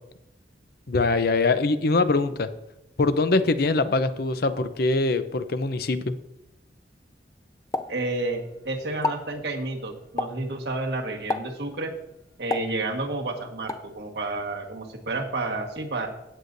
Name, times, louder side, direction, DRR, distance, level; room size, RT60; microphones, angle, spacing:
voice 1, 0.9-2.5 3.0-6.1, left 3 dB, 60° left, 11 dB, 0.6 m, -23 dB
Explosion, 7.7-8.6 8.9-9.3 10.2-10.5 11.3-11.7 12.5-13.2 13.7-13.9, left 3 dB, 20° left, 0.4 m, -31 dB
voice 2, 7.9-11.9 12.4-16.1, right 2 dB, 65° right, 1 dB, 1.6 m, -30 dB
16.0 x 8.1 x 2.7 m, 0.88 s
head